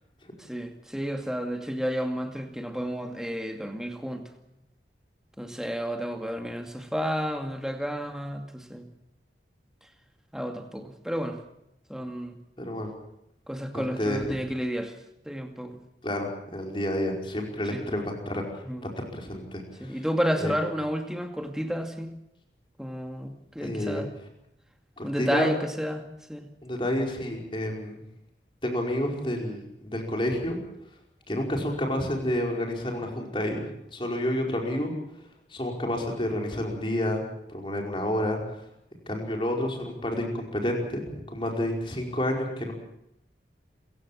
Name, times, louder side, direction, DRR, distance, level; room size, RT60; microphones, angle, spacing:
voice 1, 0.4-4.3 5.4-8.9 10.3-11.4 11.9-12.4 13.5-15.0 15.3-15.8 17.7-17.8 18.7-18.9 19.8-22.1 22.8-24.1 25.0-26.0 26.3-26.4 34.4-34.5, equal, 5° right, 4 dB, 2.3 m, -31 dB
voice 2, 12.6-12.9 13.7-14.2 16.0-18.4 18.8-20.1 20.4-20.6 23.6-24.0 25.0-25.5 26.6-28.0 28.6-30.6 31.3-34.9 35.5-37.2 37.5-38.4 39.1-42.7, left 1 dB, 30° left, 1 dB, 5.1 m, -29 dB
27.0 x 16.0 x 7.6 m, 0.82 s
head